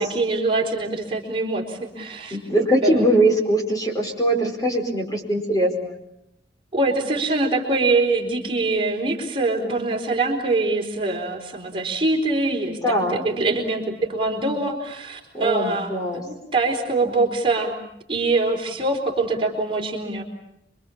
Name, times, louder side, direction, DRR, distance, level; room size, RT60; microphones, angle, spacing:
voice 1, 0.0-3.1 6.7-17.7 18.1-20.2, right 3 dB, 30° right, 1 dB, 4.3 m, -24 dB
voice 2, 2.3-5.9 12.8-13.2 15.3-16.2, right 1 dB, 20° left, 1 dB, 4.6 m, -21 dB
27.0 x 25.0 x 7.2 m, 0.80 s
head